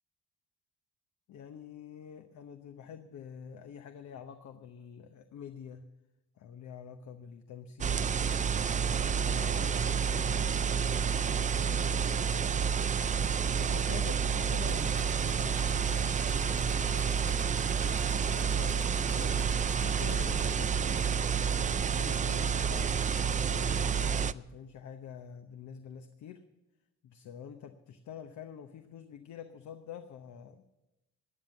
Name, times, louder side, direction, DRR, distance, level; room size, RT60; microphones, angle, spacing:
voice 1, 1.3-5.9 6.4-8.2 8.9-12.8 13.6-17.1 18.0-21.1 21.9-26.4 27.0-30.6, left 7 dB, 70° left, 7 dB, 0.9 m, -47 dB
sound 1, 7.8-24.3, right 7 dB, 25° right, 0.4 m, -29 dB
sound 2, 14.6-20.6, equal, 5° left, 1.5 m, -48 dB
15.5 x 9.4 x 7.1 m, 0.98 s
cardioid pair, 90°, 30 cm